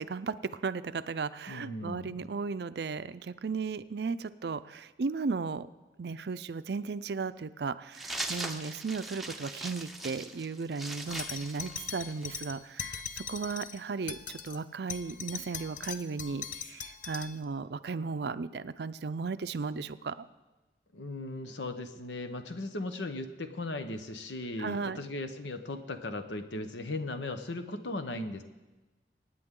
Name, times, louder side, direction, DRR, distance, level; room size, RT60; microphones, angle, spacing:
voice 1, 0.0-5.7 6.0-14.2 14.4-20.3 24.6-25.0, right 4 dB, 65° right, 14 dB, 0.5 m, -35 dB
voice 2, 1.5-2.3 20.9-28.4, left 2 dB, 85° left, 8 dB, 1.0 m, -37 dB
sound 1, 7.9-12.4, right 2 dB, ahead, 0.7 m, -40 dB
sound 2, 11.1-13.8 14.1-14.6 14.9-17.4, left 7 dB, 45° left, 0.6 m, -40 dB
25.0 x 9.4 x 3.8 m, 1.1 s
head